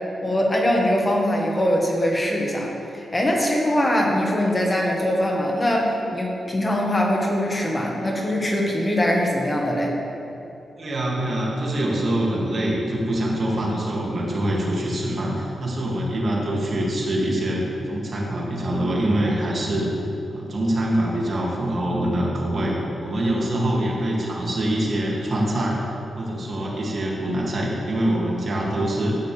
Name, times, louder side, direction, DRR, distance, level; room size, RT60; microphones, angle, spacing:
voice 1, 0.2-9.9, left 1 dB, 25° left, -1 dB, 1.6 m, -22 dB
voice 2, 10.8-19.9 20.3-22.8 23.0-25.8 26.2-29.2, right 1 dB, 50° right, -4 dB, 2.5 m, -24 dB
13.0 x 9.4 x 3.5 m, 2.8 s
cardioid pair, 85°, 0 cm